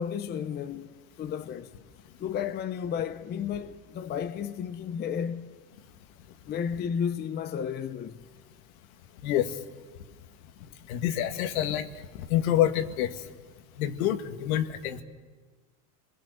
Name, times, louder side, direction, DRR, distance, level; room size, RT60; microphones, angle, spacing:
voice 1, 0.0-1.7 2.2-5.5 6.4-8.2, left 8 dB, 25° left, 0.7 m, -33 dB
voice 2, 9.2-9.5 10.9-11.9 12.3-13.1 13.8-15.0, left 11 dB, 75° left, 2.0 m, -26 dB
29.0 x 21.5 x 6.8 m
supercardioid pair, 150°, 42 cm